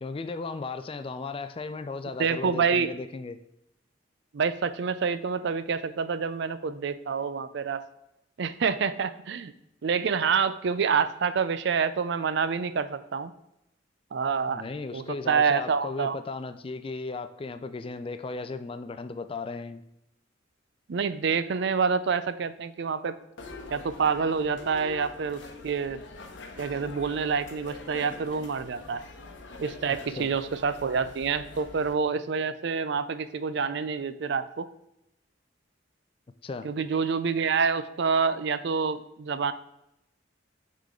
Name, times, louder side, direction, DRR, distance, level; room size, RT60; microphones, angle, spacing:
voice 1, 0.0-3.4 14.5-19.8 30.2-30.3 36.4-36.7, left 3 dB, 30° left, 10 dB, 0.4 m, -36 dB
voice 2, 2.2-2.9 4.3-7.8 8.4-9.5 9.8-13.3 14.1-14.6 14.9-16.2 20.9-23.1 23.7-26.0 26.6-29.0 29.6-34.7 36.6-39.5, right 5 dB, 65° right, 13 dB, 0.4 m, -27 dB
sound 1, 23.4-31.9, left 3 dB, 75° left, 0.9 m, -44 dB
8.6 x 3.8 x 3.7 m, 0.83 s
head